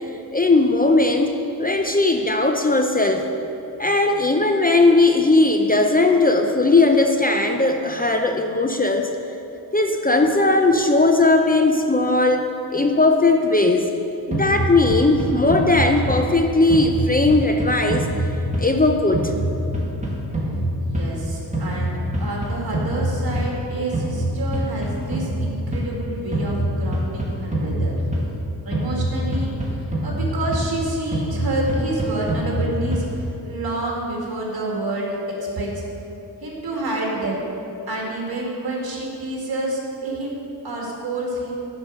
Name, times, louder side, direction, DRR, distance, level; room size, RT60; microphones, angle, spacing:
voice 1, 0.3-1.3 1.6-3.2 3.8-9.1 9.7-13.8 14.3-18.0 18.6-19.3, left 2 dB, 20° left, 4 dB, 0.5 m, -18 dB
sound 1, 14.3-16.4 16.7-18.9 19.1-21.2 21.5-23.6 23.9-25.9 26.3-28.4 28.7-30.8 31.1-33.2, equal, 15° right, 1.9 m, -25 dB
voice 2, 20.8-27.9 28.7-29.5 30.0-35.2 35.6-35.8 36.4-37.4 37.9-41.5, right 2 dB, 60° right, -2 dB, 2.2 m, -28 dB
9.7 x 5.3 x 6.3 m, 2.9 s
cardioid pair, 75°, 40 cm